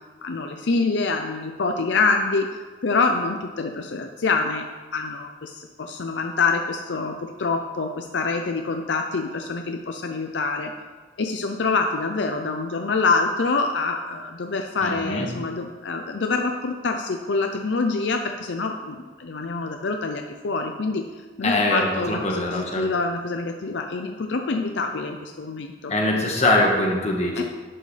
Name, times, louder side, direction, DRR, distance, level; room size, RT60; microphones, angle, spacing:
voice 1, 0.2-2.5 2.8-4.7 4.9-10.7 11.2-21.1 21.4-25.9 27.4-27.5, left 4 dB, 75° left, 4 dB, 0.6 m, -26 dB
voice 2, 14.8-15.3 21.4-22.9 25.9-27.4, left 1 dB, 40° left, 0 dB, 1.5 m, -22 dB
10.5 x 7.8 x 3.3 m, 1.4 s
head